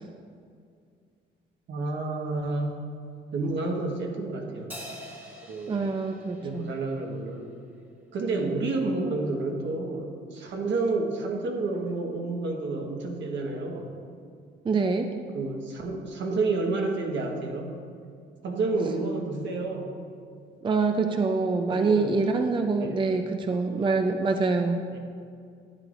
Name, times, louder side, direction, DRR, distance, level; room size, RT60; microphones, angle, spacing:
voice 1, 1.7-2.8 3.3-4.8 5.5-5.9 6.4-7.5 8.1-13.9 15.3-17.7 18.4-20.0 21.7-22.1 22.8-23.0 24.9-25.0, right 3 dB, 65° right, 1 dB, 1.4 m, -30 dB
Crash cymbal, 4.7-7.4, equal, 10° right, 1.3 m, -45 dB
voice 2, 5.7-6.7 8.3-8.5 14.6-15.1 20.6-24.8, right 4 dB, 25° right, 5 dB, 0.5 m, -25 dB
11.5 x 9.7 x 2.6 m, 2.3 s
cardioid pair, 90°, 20 cm